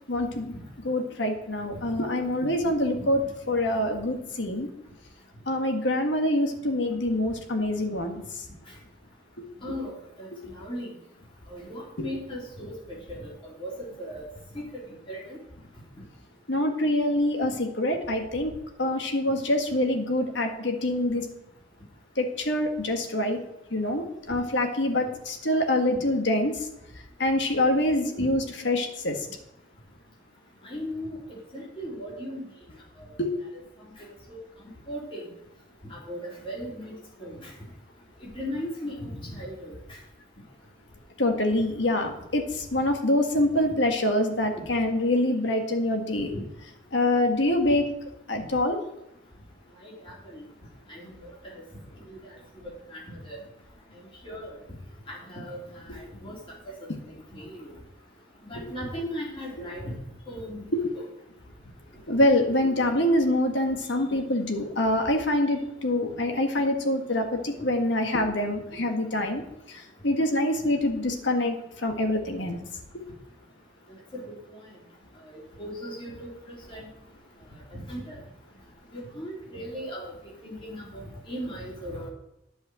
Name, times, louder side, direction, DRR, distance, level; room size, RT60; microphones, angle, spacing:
voice 1, 0.1-0.5 0.8-3.2 3.5-4.7 5.5-8.2 16.5-18.5 18.8-21.3 22.2-23.4 23.7-26.6 27.2-29.2 33.2-33.3 41.2-46.3 46.9-47.9 48.3-48.8 60.7-60.8 62.1-69.4 69.7-72.6, left 1 dB, 65° left, 4 dB, 1.7 m, -25 dB
voice 2, 9.6-9.9 10.2-10.9 11.5-12.7 13.1-13.7 14.0-14.2 14.5-14.8 15.1-15.4 28.2-28.3 30.6-31.2 31.5-32.4 33.1-33.2 34.3-34.4 34.9-35.2 35.9-36.9 37.2-37.5 38.2-39.7 46.3-46.4 49.8-49.9 50.3-50.4 50.9-51.1 52.1-52.2 52.9-53.4 54.2-54.6 55.1-55.6 55.9-56.4 57.1-57.7 58.4-59.9 60.3-60.6 60.9-61.1 74.1-74.2 74.5-74.6 75.3-76.9 77.7-78.1 78.9-82.1, equal, 25° left, -4 dB, 3.3 m, -37 dB
9.8 x 5.6 x 7.7 m, 0.88 s
head